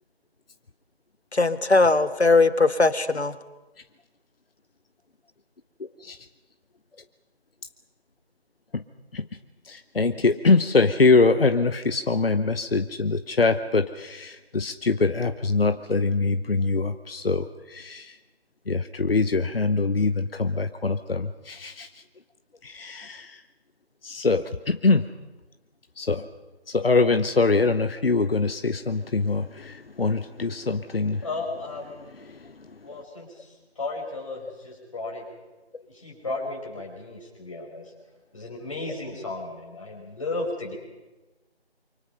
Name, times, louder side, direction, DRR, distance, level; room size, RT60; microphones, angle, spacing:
voice 1, 1.3-3.3, left 3 dB, 85° left, 12 dB, 1.5 m, -19 dB
voice 2, 5.8-6.2 8.7-8.8 9.1-9.3 9.7-18.2 18.7-22.0 22.6-23.4 24.0-25.0 26.0-26.3 26.7-31.2 32.3-32.5, left 3 dB, 60° left, 9 dB, 0.9 m, -23 dB
voice 3, 31.2-32.1 32.8-35.2 35.8-37.9 38.3-40.7, left 2 dB, 30° left, -2 dB, 5.5 m, -34 dB
26.0 x 24.5 x 5.7 m, 1.1 s
figure-of-eight pair, 165°, 32 cm